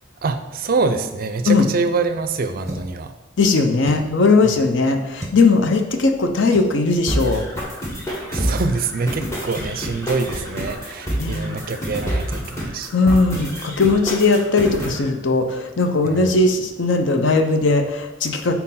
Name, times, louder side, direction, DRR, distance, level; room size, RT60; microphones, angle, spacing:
voice 1, 0.2-3.1 8.3-12.9 16.0-16.3, right 4 dB, 45° right, 9 dB, 0.4 m, -25 dB
sound 1, 2.6-3.0 3.8-4.2 5.2-5.4 6.5-6.8 7.5-7.7 8.0-8.1 8.5-8.7, right 1 dB, 15° right, 0.8 m, -34 dB
voice 2, 3.4-7.4 11.1-11.6 12.9-18.5, left 3 dB, 60° left, 6 dB, 0.6 m, -18 dB
sound 2, 7.1-15.1, equal, 15° left, 1.1 m, -27 dB
4.4 x 4.1 x 5.6 m, 1.1 s
head